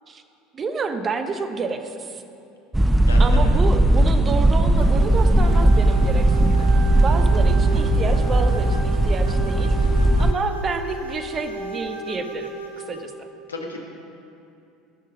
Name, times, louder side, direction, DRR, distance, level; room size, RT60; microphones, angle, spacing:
voice 1, 0.5-2.2 3.2-12.5 12.9-13.1, right 4 dB, 30° right, 8 dB, 1.0 m, -29 dB
sound 1, 2.7-10.3, right 1 dB, 10° right, 0.4 m, -17 dB
voice 2, 3.1-3.5 13.5-13.8, left 2 dB, 85° left, 1 dB, 1.3 m, -33 dB
sound 2, 4.8-13.2, right 1 dB, 85° right, 1.0 m, -34 dB
14.5 x 6.6 x 5.3 m, 2.7 s
figure-of-eight pair, 70°, 0 cm